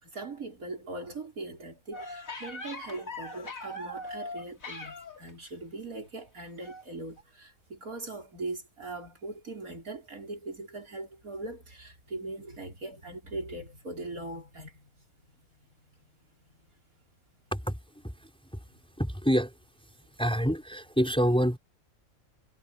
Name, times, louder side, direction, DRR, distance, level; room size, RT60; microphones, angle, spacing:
voice 1, 0.0-15.4 15.6-15.8 16.1-16.7 18.7-18.8, right 2 dB, 85° right, 5.5 m, -41 dB
sound 1, 1.9-5.3 6.6-6.8 7.2-7.3, left 1 dB, 70° left, 5.0 m, -40 dB
voice 2, 18.0-18.6 19.0-19.5 20.2-21.6, equal, 5° left, 5.8 m, -27 dB
omnidirectional pair, 1.5 m